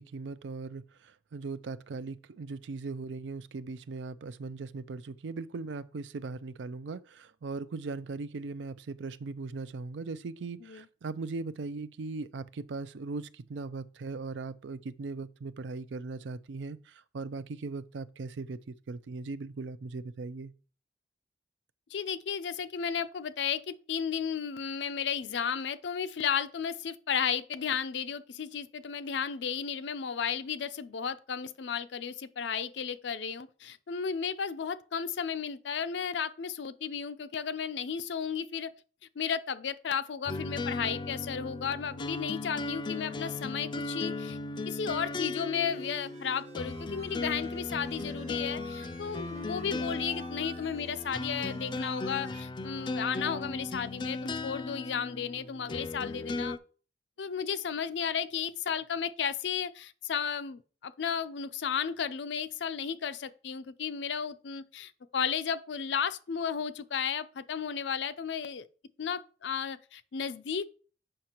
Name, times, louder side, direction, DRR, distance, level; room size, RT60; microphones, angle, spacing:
voice 1, 0.0-20.5, right 3 dB, 90° right, 0.4 m, -39 dB
voice 2, 21.9-38.7 39.2-44.4 44.7-56.6 57.2-68.7 69.0-70.7, left 7 dB, 80° left, 0.5 m, -34 dB
sound 1, 40.3-56.6, left 3 dB, 25° left, 0.3 m, -37 dB
sound 2, 45.6-52.4, right 2 dB, 40° right, 0.8 m, -51 dB
7.7 x 5.7 x 2.9 m
head